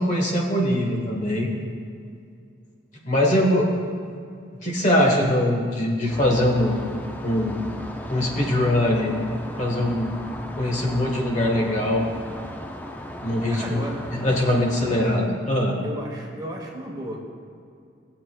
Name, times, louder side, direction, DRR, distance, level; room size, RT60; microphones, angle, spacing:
voice 1, 0.0-1.5 3.0-3.7 4.6-6.8 7.2-7.6 8.1-9.1 9.6-10.1 10.6-12.1 13.2-15.7, left 1 dB, 40° left, 0 dB, 1.2 m, -22 dB
sound 1, 6.1-15.2, left 1 dB, 10° left, 0.4 m, -36 dB
voice 2, 13.5-14.0 15.8-17.2, equal, 20° right, -1 dB, 1.1 m, -34 dB
16.0 x 7.6 x 2.2 m, 2.4 s
head